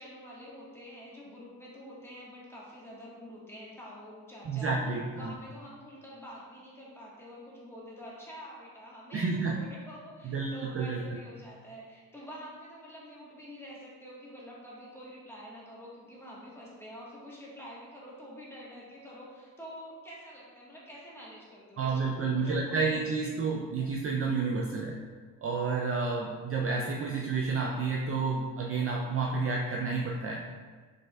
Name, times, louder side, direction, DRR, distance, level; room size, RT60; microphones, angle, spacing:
voice 1, 0.0-4.7 5.2-23.3 23.8-23.9, equal, 5° left, -6 dB, 1.3 m, -47 dB
voice 2, 4.5-5.3 9.1-9.7 10.2-11.2 21.8-25.0 25.4-30.5, right 4 dB, 35° right, -1 dB, 0.4 m, -30 dB
4.9 x 3.4 x 2.2 m, 1.5 s
cardioid pair, 85°, 39 cm